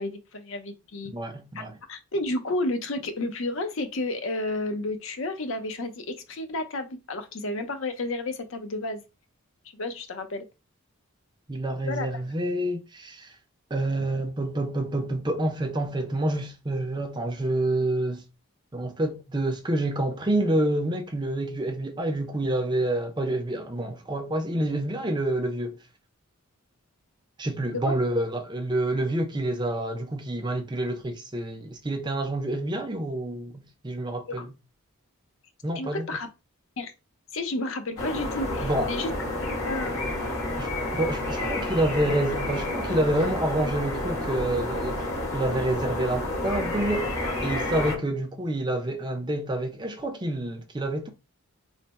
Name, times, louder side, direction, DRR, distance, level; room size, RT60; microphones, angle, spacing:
voice 1, 0.0-1.1 1.5-1.6 1.9-9.0 9.7-10.5 11.8-12.1 27.7-27.8 34.3-34.4 35.8-36.3 36.8-36.9 37.3-39.1 39.4-40.2, left 2 dB, 60° left, 0.6 m, -31 dB
voice 2, 1.1-1.7 11.5-13.3 13.7-18.2 18.7-25.7 27.4-34.5 35.6-36.1 38.6-38.9 40.6-47.1 47.4-51.1, right 1 dB, 20° right, 0.5 m, -28 dB
sound 1, 38.0-48.0, left 1 dB, 85° left, 1.4 m, -30 dB
3.2 x 2.1 x 4.1 m
head